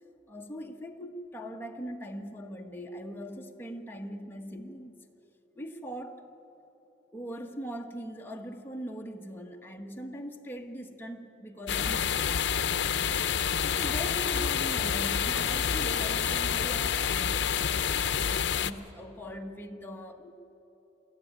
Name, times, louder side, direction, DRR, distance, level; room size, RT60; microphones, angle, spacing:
voice 1, 0.3-4.9 5.5-6.3 7.1-12.4 13.6-20.3, equal, 10° left, 2 dB, 1.3 m, -41 dB
sound 1, 11.7-18.7, left 7 dB, 70° left, 0.7 m, -28 dB
22.5 x 15.0 x 10.0 m, 3.0 s
head